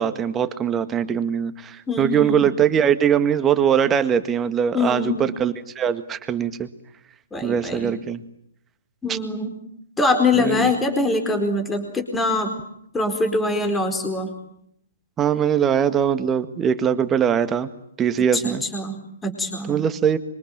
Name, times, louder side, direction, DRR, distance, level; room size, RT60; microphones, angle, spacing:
voice 1, 0.0-6.7 7.4-8.2 9.1-9.2 10.3-10.7 15.2-17.7 18.0-18.6 19.7-20.2, right 8 dB, 15° right, 11 dB, 1.8 m, -21 dB
voice 2, 1.9-2.5 4.7-5.2 7.3-8.0 9.0-9.6 10.0-12.5 12.9-14.3 18.3-19.8, left 2 dB, 10° left, 5 dB, 4.5 m, -23 dB
26.0 x 24.5 x 9.2 m, 0.74 s
figure-of-eight pair, 125°, 0 cm